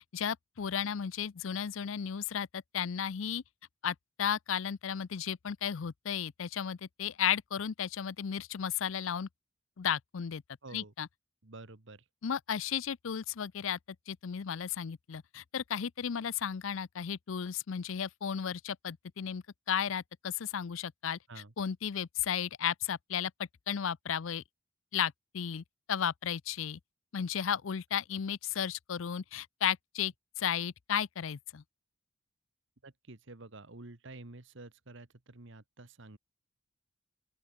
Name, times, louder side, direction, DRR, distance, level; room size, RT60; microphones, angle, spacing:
voice 1, 0.1-3.4 3.8-9.3 9.8-10.4 10.7-11.1 12.2-13.8 14.1-21.2 21.6-23.3 23.7-24.4 24.9-26.8 27.1-31.6, left 8 dB, 70° left, 0.5 m, -34 dB
voice 2, 10.6-10.9 11.4-12.0 21.3-21.5 32.8-36.2, right 2 dB, 60° right, 1.5 m, -49 dB
open air
head